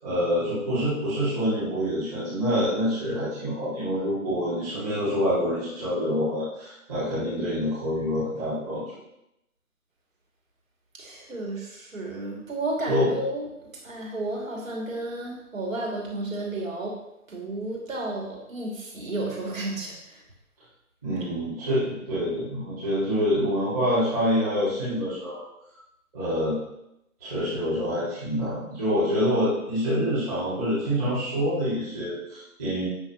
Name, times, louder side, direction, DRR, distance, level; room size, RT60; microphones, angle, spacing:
voice 1, 0.0-8.8 12.9-13.1 21.0-25.4 26.1-26.5 27.2-32.9, equal, 10° right, -13 dB, 2.1 m, -26 dB
voice 2, 11.0-17.0 17.3-20.2, right 2 dB, 60° right, -2 dB, 2.7 m, -32 dB
8.2 x 6.4 x 3.0 m, 0.85 s
hypercardioid pair, 175°, 45 cm